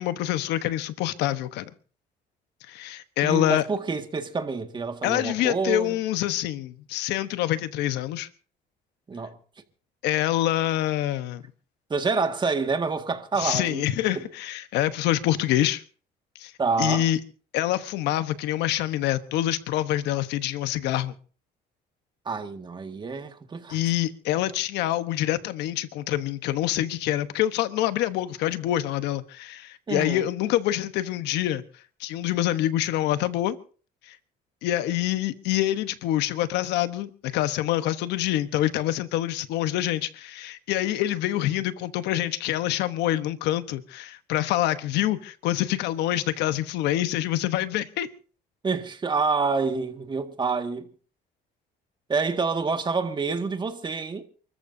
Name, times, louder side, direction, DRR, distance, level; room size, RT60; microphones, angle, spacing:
voice 1, 0.0-1.7 2.7-3.7 5.0-8.3 10.0-11.4 13.4-15.8 16.4-16.5 16.8-17.2 17.5-21.1 23.7-31.6 32.0-33.6 34.1-34.2 34.6-48.1, left 13 dB, 90° left, 1.1 m, -26 dB
voice 2, 3.2-6.0 9.1-9.4 11.9-13.8 14.1-14.2 16.6-17.1 22.3-23.8 29.9-30.3 48.6-50.9 52.1-54.2, right 4 dB, 25° right, 1.9 m, -27 dB
29.0 x 14.0 x 2.7 m
cardioid pair, 110°, 17 cm